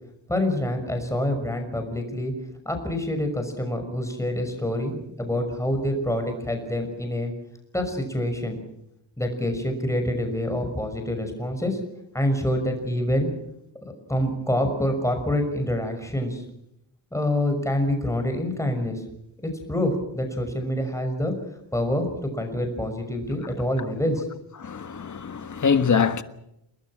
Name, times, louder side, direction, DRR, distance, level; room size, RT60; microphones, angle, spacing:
voice 1, 0.3-2.3 2.7-7.3 7.7-8.6 9.2-11.8 12.1-13.3 14.1-16.4 17.1-19.0 19.7-21.3 21.7-24.3, left 1 dB, 5° left, 5.9 m, -26 dB
voice 2, 24.6-26.2, left 6 dB, 40° left, 1.6 m, -23 dB
30.0 x 20.0 x 6.3 m
wide cardioid pair, 155°, 44 cm